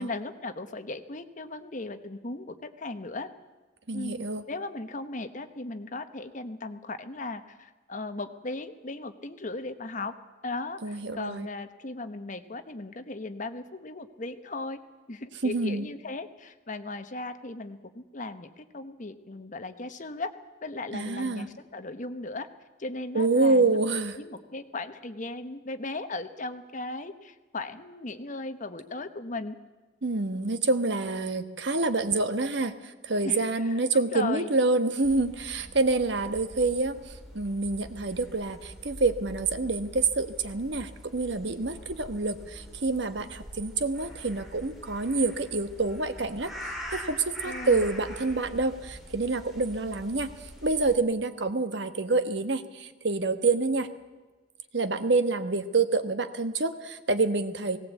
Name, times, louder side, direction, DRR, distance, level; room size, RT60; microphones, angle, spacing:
voice 1, 0.0-3.3 3.9-4.2 4.5-10.1 10.4-14.8 15.1-20.3 20.6-22.5 22.8-23.8 24.1-29.6 33.2-34.5 47.4-47.9, left 2 dB, 45° left, 9 dB, 1.1 m, -37 dB
voice 2, 3.9-4.4 10.8-11.5 15.4-15.8 20.9-21.5 23.1-24.2 30.0-46.5 46.9-53.9 54.7-57.8, right 3 dB, 70° right, 10 dB, 1.3 m, -27 dB
sound 1, 35.0-50.9, equal, ahead, 3.9 m, -44 dB
18.0 x 18.0 x 8.3 m, 1.3 s
head